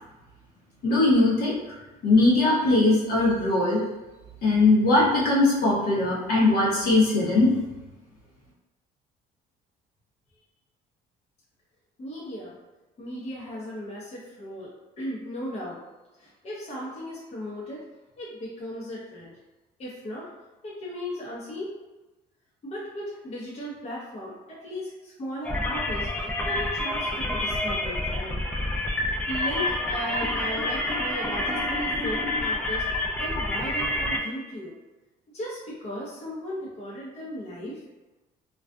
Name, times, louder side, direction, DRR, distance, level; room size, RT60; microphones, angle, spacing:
voice 1, 0.8-1.5 2.0-3.8 4.4-7.5, left 2 dB, 65° left, -6 dB, 0.9 m, -20 dB
voice 2, 12.0-12.6 13.0-15.8 16.2-17.9 18.2-19.3 19.8-20.3 20.6-21.8 22.6-28.4 29.3-32.9 33.2-34.7 35.3-37.8, equal, 40° left, -6 dB, 0.7 m, -36 dB
sound 1, 25.4-34.2, left 1 dB, 10° left, 0.3 m, -28 dB
2.5 x 2.3 x 2.2 m, 1.1 s
cardioid pair, 110°, 17 cm